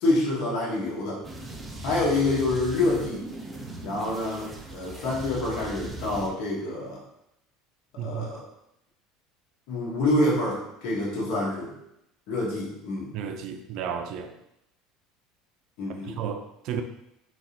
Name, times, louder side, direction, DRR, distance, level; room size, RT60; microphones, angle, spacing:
voice 1, 0.0-1.2 1.8-3.2 3.8-7.0 8.0-8.4 9.7-11.7 12.3-13.1 15.8-16.2, left 2 dB, 70° left, -5 dB, 1.3 m, -27 dB
sound 1, 1.2-6.3, right 2 dB, 15° right, 0.6 m, -39 dB
voice 2, 8.0-8.3 13.1-14.3 16.0-16.8, right 7 dB, 60° right, 6 dB, 0.5 m, -33 dB
4.0 x 3.4 x 2.9 m, 0.82 s
supercardioid pair, 115°, 0 cm